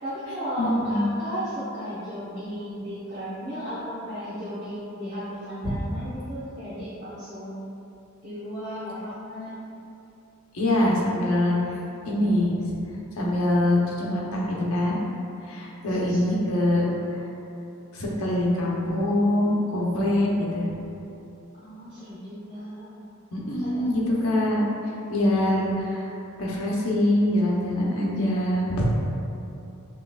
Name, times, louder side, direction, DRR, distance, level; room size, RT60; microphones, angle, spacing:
voice 1, 0.0-7.7 8.2-9.6 15.9-16.2 21.5-22.9 23.6-23.8, equal, 30° right, -13 dB, 0.9 m, -35 dB
voice 2, 0.6-1.1 5.6-5.7 10.5-11.6 12.0-12.5 13.1-15.0 15.4-16.8 17.9-20.7 23.3-24.6 25.1-26.1 26.4-28.9, left 1 dB, 75° left, -4 dB, 0.8 m, -24 dB
5.6 x 3.1 x 2.4 m, 2.8 s
head